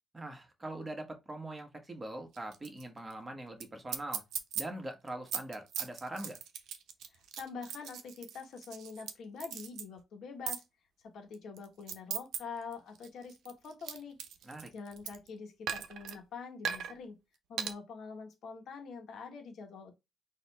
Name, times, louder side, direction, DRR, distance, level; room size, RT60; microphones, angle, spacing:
voice 1, 0.1-4.2 4.5-6.4 14.4-14.7, right 1 dB, 20° right, 1.4 m, -42 dB
sound 1, 2.3-2.8 3.1-3.2 3.6-3.7 3.9-4.6 5.1-9.1 9.4-9.8 10.5-10.6 11.3-12.4 12.7-15.3 15.7-16.2 16.6-16.9 17.6-17.7, right 8 dB, 80° right, 0.7 m, -38 dB
voice 2, 7.1-10.6 11.1-14.1 14.7-17.2 17.5-19.9, left 5 dB, 70° left, 1.4 m, -45 dB
4.1 x 2.9 x 3.4 m
cardioid pair, 90°, 0 cm